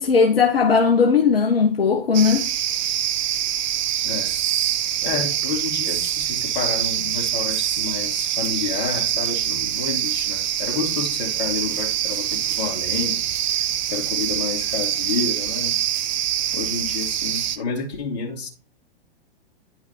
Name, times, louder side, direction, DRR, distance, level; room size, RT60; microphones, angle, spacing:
voice 1, 0.0-2.4, left 5 dB, 70° left, 1.2 m, -17 dB
sound 1, 2.1-17.6, right 11 dB, 45° right, 1.0 m, -24 dB
voice 2, 4.0-4.4 5.0-13.6 13.9-15.8 16.5-18.5, left 5 dB, 45° left, 2.9 m, -30 dB
10.5 x 5.4 x 3.4 m
figure-of-eight pair, 110°, 31 cm